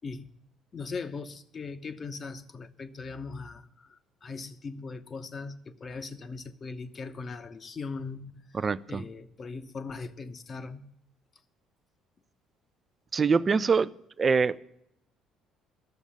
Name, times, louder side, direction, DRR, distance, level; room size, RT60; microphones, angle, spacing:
voice 1, 0.7-8.4 8.9-10.9, left 4 dB, 35° left, 12 dB, 0.9 m, -39 dB
voice 2, 8.5-9.0 13.1-13.9 14.2-14.6, right 5 dB, 35° right, 16 dB, 0.5 m, -24 dB
12.0 x 7.1 x 10.0 m, 0.76 s
figure-of-eight pair, 50°, 0 cm